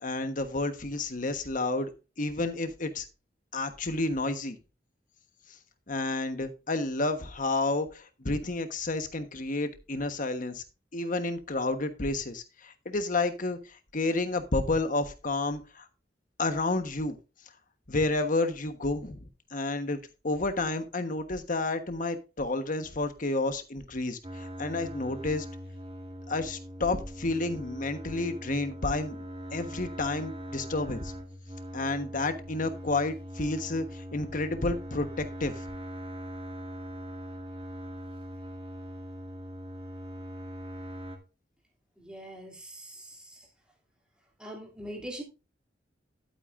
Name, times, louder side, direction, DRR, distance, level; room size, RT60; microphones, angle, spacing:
voice 1, 0.0-1.9 2.2-3.0 3.5-4.6 5.9-10.6 10.9-15.9 16.4-17.2 17.9-19.2 19.5-20.0 20.2-25.4 26.3-31.1 31.7-35.6, left 2 dB, 45° left, 8 dB, 1.3 m, -30 dB
sound 1, 24.2-41.2, equal, 30° right, 1.9 m, -41 dB
voice 2, 42.0-43.4 44.4-45.2, right 1 dB, 5° right, -1 dB, 2.8 m, -42 dB
12.0 x 8.8 x 2.6 m, 0.30 s
head